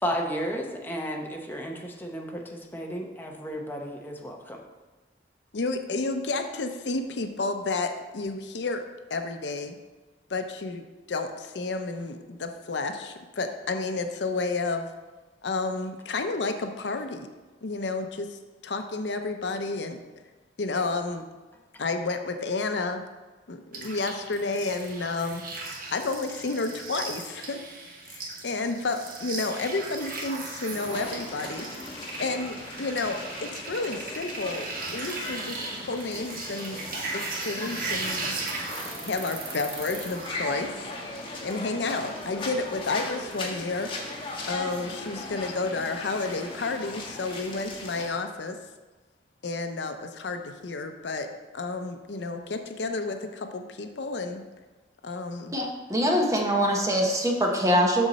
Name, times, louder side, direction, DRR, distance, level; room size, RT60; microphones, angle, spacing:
voice 1, 0.0-4.6, equal, 10° left, 1 dB, 0.9 m, -33 dB
voice 2, 5.5-8.8 9.1-9.8 10.3-14.9 15.4-17.3 17.6-20.0 20.6-21.2 21.8-23.0 23.5-25.4 25.9-27.6 28.1-31.7 32.2-36.8 37.2-38.4 39.0-40.7 41.4-43.9 44.5-48.6 49.4-51.3 51.5-54.4 55.0-55.5, left 3 dB, 70° left, 7 dB, 0.6 m, -31 dB
sound 1, 23.7-40.3, right 3 dB, 50° right, 1.2 m, -37 dB
sound 2, 30.7-48.1, left 2 dB, 30° left, 1.4 m, -38 dB
voice 3, 55.5-58.1, equal, 20° right, 1 dB, 1.0 m, -23 dB
7.0 x 6.4 x 4.1 m, 1.2 s
head